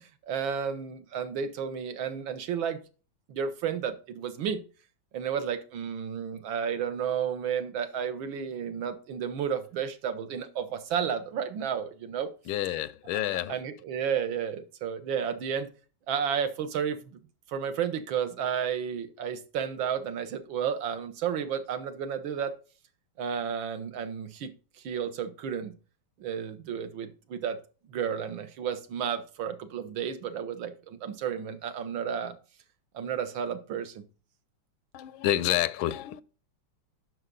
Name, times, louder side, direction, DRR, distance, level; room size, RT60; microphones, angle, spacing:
voice 1, 0.0-2.8 3.3-4.6 5.1-12.3 13.1-15.7 16.1-17.2 17.5-22.6 23.2-24.5 24.8-25.7 26.2-27.6 27.9-32.4 32.9-34.0, right 7 dB, 80° right, 1.8 m, -32 dB
voice 2, 12.5-13.6 34.9-36.2, left 13 dB, 90° left, 1.4 m, -28 dB
9.6 x 6.1 x 3.9 m
omnidirectional pair, 2.2 m